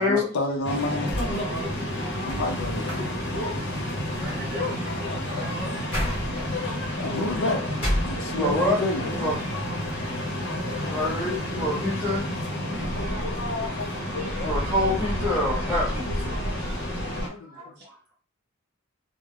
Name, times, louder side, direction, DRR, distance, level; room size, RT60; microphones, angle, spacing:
voice 1, 0.0-1.2 2.3-3.1 4.9-5.4 7.0-7.7 8.0-9.3 10.3-11.8 12.7-17.8, left 2 dB, 85° left, 3 dB, 0.5 m, -33 dB
sound 1, 0.6-17.3, left 1 dB, 50° left, 0.8 m, -31 dB
sound 2, 1.1-8.8 9.2-10.0, equal, 25° left, 1.0 m, -35 dB
voice 2, 1.1-2.2 4.2-6.1 16.6-16.7 17.8-17.9, right 1 dB, 45° right, -3 dB, 0.6 m, -40 dB
sound 3, 1.3-17.2, equal, 85° right, 0.5 m, -38 dB
voice 3, 8.3-8.8 9.1-9.4 10.8-12.2 14.4-16.4 17.2-18.1, left 1 dB, 5° right, -7 dB, 0.9 m, -27 dB
2.3 x 2.0 x 3.2 m, 0.37 s
head